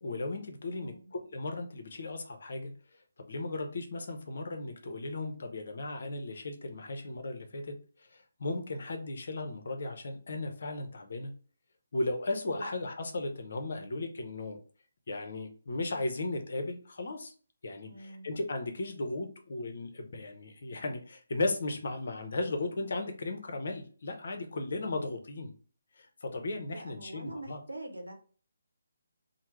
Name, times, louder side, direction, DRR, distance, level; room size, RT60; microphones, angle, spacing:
voice 1, 0.0-2.7 3.2-7.7 8.0-11.3 11.9-14.6 15.1-17.3 17.6-25.5 25.9-27.6, left 2 dB, 50° left, 5 dB, 0.6 m, -36 dB
voice 2, 17.9-18.3 26.7-28.1, right 1 dB, 70° right, 3 dB, 0.8 m, -43 dB
3.3 x 2.1 x 3.1 m, 0.40 s
figure-of-eight pair, 145°, 0 cm